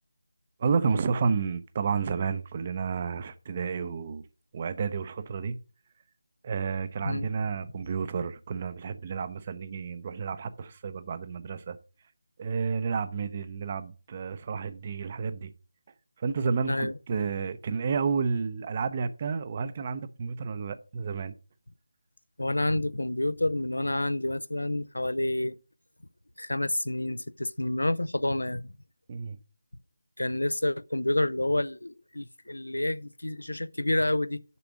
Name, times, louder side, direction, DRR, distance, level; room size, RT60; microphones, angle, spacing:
voice 1, 0.6-4.2 4.5-5.6 6.4-11.8 12.4-15.5 16.2-21.3 29.1-29.4, right 5 dB, 30° right, 0.7 m, -31 dB
voice 2, 22.4-25.6 26.4-28.7 30.2-34.4, left 1 dB, 80° left, 0.5 m, -29 dB
6.9 x 5.9 x 6.2 m
figure-of-eight pair, 160°, 0 cm